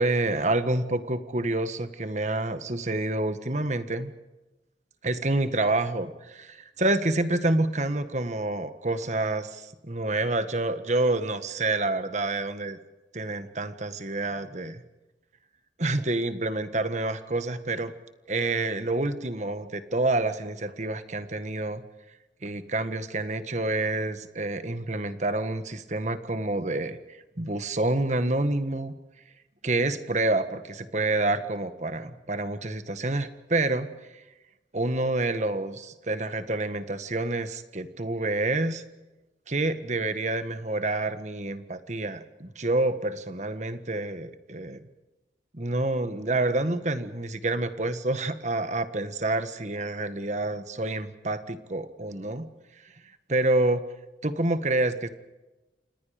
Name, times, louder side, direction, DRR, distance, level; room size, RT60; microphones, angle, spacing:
voice 1, 0.0-4.1 5.0-12.8 13.1-14.8 15.8-17.9 18.3-21.8 22.4-28.9 29.6-33.9 34.7-38.8 39.5-44.9 45.5-52.5 53.3-53.8 54.2-55.1, right 2 dB, 40° right, 10 dB, 1.5 m, -28 dB
29.5 x 26.0 x 5.1 m, 1.1 s
head